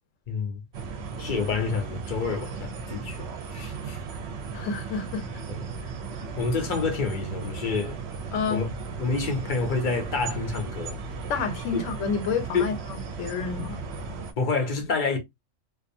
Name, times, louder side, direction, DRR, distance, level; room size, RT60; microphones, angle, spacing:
voice 1, 0.3-0.6 1.2-4.0 5.5-5.7 6.4-8.0 8.5-8.7 9.0-11.0 11.7-11.8 12.5-12.7 14.4-15.2, left 4 dB, 50° left, 0.7 m, -28 dB
sound 1, 0.7-14.3, right 5 dB, 65° right, 0.8 m, -36 dB
voice 2, 4.5-5.3 8.3-8.6 11.3-13.8, left 5 dB, 75° left, 1.0 m, -29 dB
2.4 x 2.3 x 2.5 m
omnidirectional pair, 1.3 m